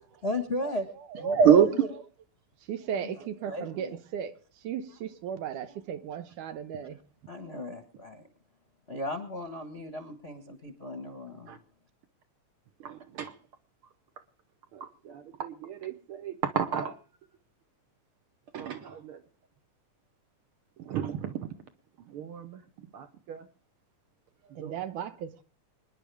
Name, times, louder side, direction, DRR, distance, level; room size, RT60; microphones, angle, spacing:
voice 1, 0.2-0.9 1.2-1.9 3.5-4.0 7.3-8.3 8.9-11.5, left 1 dB, 40° left, 0.9 m, -35 dB
voice 2, 1.1-1.7 11.5-11.6 12.8-13.4 14.7-17.0 18.5-19.2 20.8-21.5 22.1-23.5 24.6-24.8, right 8 dB, 75° right, 1.2 m, -28 dB
voice 3, 2.7-7.0 24.4-25.4, right 8 dB, 90° right, 2.5 m, -36 dB
25.5 x 10.5 x 3.5 m
omnidirectional pair, 3.5 m